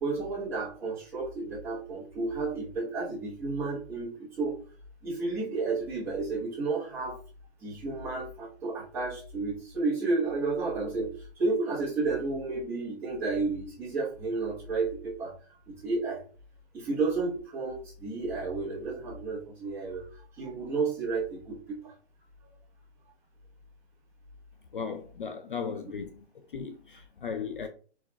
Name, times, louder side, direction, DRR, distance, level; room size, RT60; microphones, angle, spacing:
voice 1, 0.0-4.6 5.0-7.2 7.6-11.1 11.4-15.3 15.7-16.2 16.7-20.1 20.4-21.9 25.9-26.0, right 3 dB, 5° right, 1.1 m, -31 dB
voice 2, 24.7-26.1 26.5-27.7, left 6 dB, 50° left, 0.4 m, -36 dB
4.6 x 4.2 x 2.3 m
hypercardioid pair, 165°, 35 cm